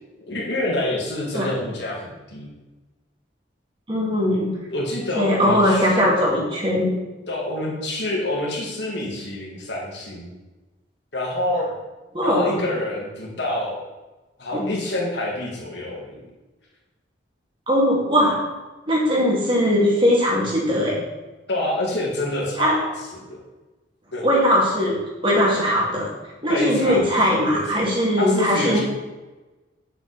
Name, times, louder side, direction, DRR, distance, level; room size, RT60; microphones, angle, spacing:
voice 1, 0.3-2.5 4.7-6.1 7.3-10.3 11.1-11.7 12.2-13.8 14.4-16.2 21.5-23.4 24.1-24.3 26.5-27.1 27.5-27.8 28.2-28.8, left 1 dB, 70° left, -3 dB, 2.6 m, -27 dB
voice 2, 3.9-4.6 5.1-6.9 12.1-12.6 14.5-14.7 17.7-18.4 18.9-21.0 22.6-22.8 24.2-26.1 26.4-28.8, equal, 25° right, -4 dB, 2.5 m, -20 dB
9.1 x 6.8 x 4.3 m, 1.1 s
head